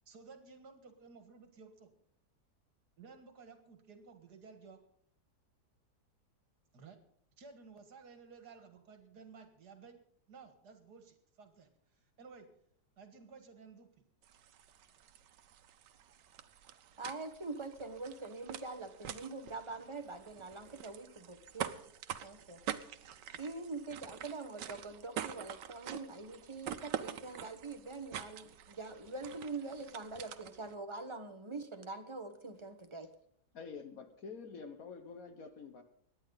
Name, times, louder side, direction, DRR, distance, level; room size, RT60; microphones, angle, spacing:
voice 1, 0.1-1.9 3.0-4.8 6.7-7.0 7.4-10.0 10.3-12.5 13.0-13.9, right 5 dB, 70° right, 7 dB, 2.3 m, -55 dB
sound 1, 14.2-30.7, right 10 dB, 90° right, 1.5 m, -46 dB
voice 2, 17.0-21.7 22.2-22.6 23.4-33.1, right 3 dB, 20° right, 7 dB, 1.1 m, -44 dB
voice 3, 33.5-35.8, left 5 dB, 55° left, 8 dB, 1.6 m, -47 dB
24.5 x 10.0 x 4.0 m, 0.65 s
omnidirectional pair, 1.8 m